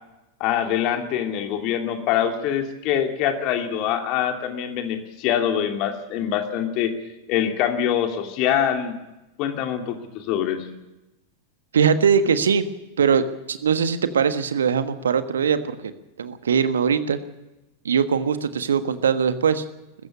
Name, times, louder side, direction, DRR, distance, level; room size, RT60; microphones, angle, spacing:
voice 1, 0.4-6.9 7.3-8.9 9.4-10.6, left 9 dB, 40° left, 5 dB, 2.8 m, -24 dB
voice 2, 11.7-12.6 13.0-13.2 13.5-15.8 16.2-17.2 17.8-19.6, right 7 dB, 65° right, 11 dB, 1.4 m, -21 dB
21.0 x 15.0 x 8.5 m, 1.0 s
figure-of-eight pair, 90°, 0 cm